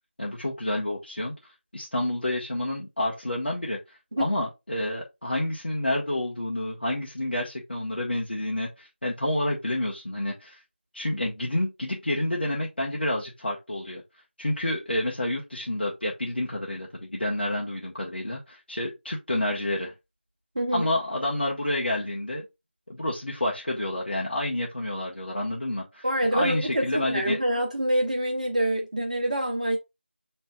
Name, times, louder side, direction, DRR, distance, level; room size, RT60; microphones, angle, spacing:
voice 1, 0.2-10.6 10.9-14.0 14.4-19.9 20.7-22.5 22.9-26.1 26.3-27.4, left 1 dB, 60° left, 1.1 m, -29 dB
voice 2, 20.5-20.9 26.0-29.8, right 1 dB, 45° right, 1.1 m, -26 dB
6.1 x 3.2 x 2.3 m
figure-of-eight pair, 170°, 6 cm